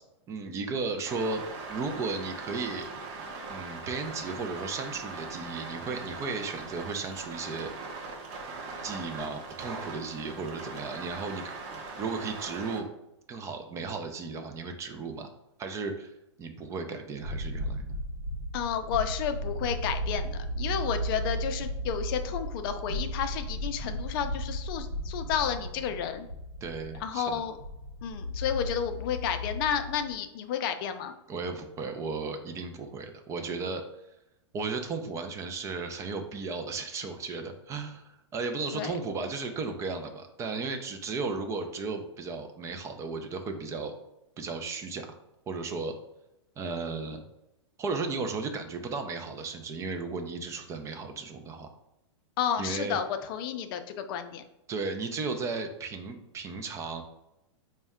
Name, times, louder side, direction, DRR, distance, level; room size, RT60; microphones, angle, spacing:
voice 1, 0.3-1.4 1.7-2.9 3.5-7.7 8.8-11.6 12.0-12.9 13.3-15.3 15.6-16.1 16.4-17.8 26.6-27.4 31.3-33.8 34.5-43.9 44.4-45.1 45.5-45.9 46.6-47.2 47.8-51.7 52.6-53.0 54.7-57.0, right 4 dB, 20° right, 5 dB, 0.3 m, -35 dB
sound 1, 1.0-12.8, right 3 dB, 45° right, 0.8 m, -40 dB
sound 2, 17.2-30.2, equal, 90° right, 0.7 m, -35 dB
voice 2, 18.5-26.3 27.0-27.6 28.0-31.1 38.7-38.9 52.4-54.4, left 8 dB, 50° left, 8 dB, 0.4 m, -31 dB
4.2 x 2.1 x 3.5 m, 0.89 s
hypercardioid pair, 130°, 15 cm